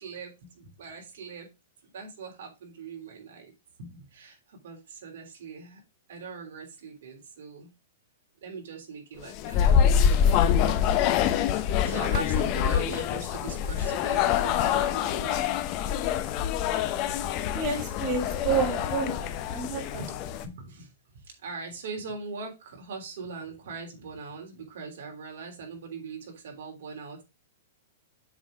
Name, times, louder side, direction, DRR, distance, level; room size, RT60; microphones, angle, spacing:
voice 1, 0.0-1.5 1.9-3.5 3.8-5.8 6.1-7.7 8.4-11.0 11.5-15.6 20.0-20.1 20.4-20.9 21.2-27.2, right 4 dB, 70° right, 3.1 m, -41 dB
sound 1, 9.3-20.4, left 8 dB, 35° left, 0.7 m, -25 dB
voice 2, 17.5-20.1, right 5 dB, 25° right, 3.0 m, -30 dB
7.2 x 3.9 x 4.9 m
hypercardioid pair, 155°, 0 cm